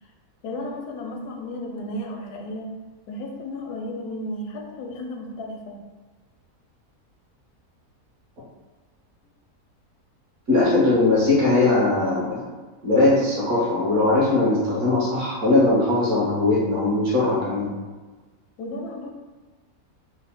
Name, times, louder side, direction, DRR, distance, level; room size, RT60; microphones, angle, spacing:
voice 1, 0.4-2.7 3.1-5.8 18.6-19.1, left 1 dB, 80° left, 2 dB, 1.1 m, -33 dB
voice 2, 10.5-12.4 12.8-17.7, left 2 dB, 60° right, -6 dB, 1.3 m, -20 dB
3.5 x 2.0 x 4.1 m, 1.3 s
omnidirectional pair, 1.6 m